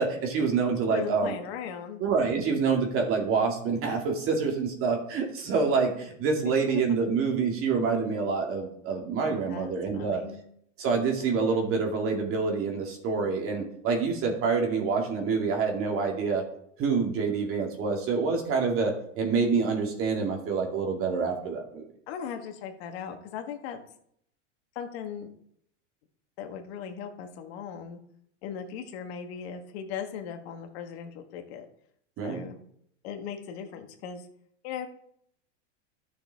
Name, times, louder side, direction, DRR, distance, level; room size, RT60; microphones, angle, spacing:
voice 1, 0.0-1.3 2.0-10.2 10.8-16.4 16.8-21.8 32.2-32.4, right 5 dB, 35° right, 1 dB, 2.4 m, -27 dB
voice 2, 0.9-2.0 6.7-7.0 9.3-10.4 22.1-23.8 24.7-25.3 26.4-28.0 28.4-31.7 32.2-32.6 33.0-34.3 34.6-34.9, left 7 dB, 60° left, 5 dB, 1.6 m, -38 dB
12.5 x 6.4 x 3.6 m, 0.69 s
supercardioid pair, 125°, 36 cm